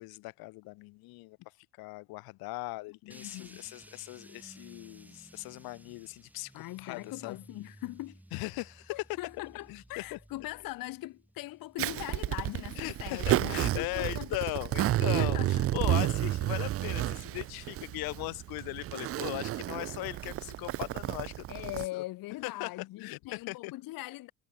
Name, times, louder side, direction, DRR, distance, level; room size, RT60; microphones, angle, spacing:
voice 1, 0.0-1.4 1.8-7.4 8.3-9.0 9.7-10.2 12.8-21.6 21.9-22.0 22.4-22.7 23.0-23.7, left 22 dB, 90° left, 1.3 m, -39 dB
voice 2, 2.9-3.7 6.5-8.2 8.9-14.3 15.2-15.8 21.5-24.3, left 18 dB, 70° left, 1.1 m, -41 dB
sound 1, 3.1-13.3, right 1 dB, 5° right, 1.7 m, -57 dB
Zipper (clothing), 11.8-21.9, right 14 dB, 40° right, 0.4 m, -31 dB
cardioid pair, 130°, 35 cm